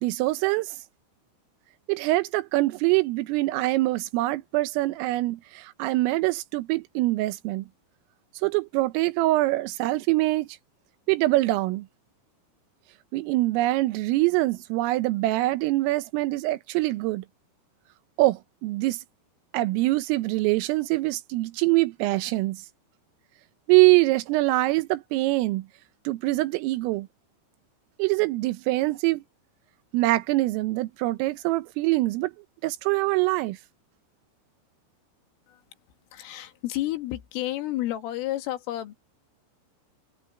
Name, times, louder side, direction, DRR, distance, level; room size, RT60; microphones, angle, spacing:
voice 1, 0.0-0.8 1.9-7.7 8.4-10.5 11.1-11.9 13.1-17.3 18.2-19.0 19.5-22.6 23.7-25.7 26.1-27.1 28.0-29.2 29.9-32.3 32.6-33.6, right 19 dB, 90° right, 3.6 m, -24 dB
voice 2, 36.1-39.0, left 15 dB, 80° left, 4.5 m, -31 dB
omnidirectional pair, 5.8 m